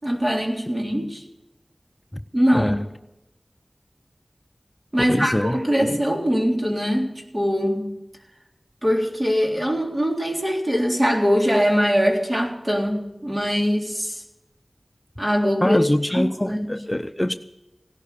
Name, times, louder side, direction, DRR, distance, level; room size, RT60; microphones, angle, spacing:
voice 1, 0.0-1.2 2.3-2.8 4.9-7.9 8.8-14.2 15.2-15.8 16.1-16.7, equal, 35° right, 0 dB, 3.5 m, -22 dB
voice 2, 5.1-6.0 15.6-17.3, left 1 dB, 25° left, 8 dB, 0.6 m, -24 dB
17.0 x 12.0 x 6.8 m, 0.94 s
wide cardioid pair, 45°, 0 cm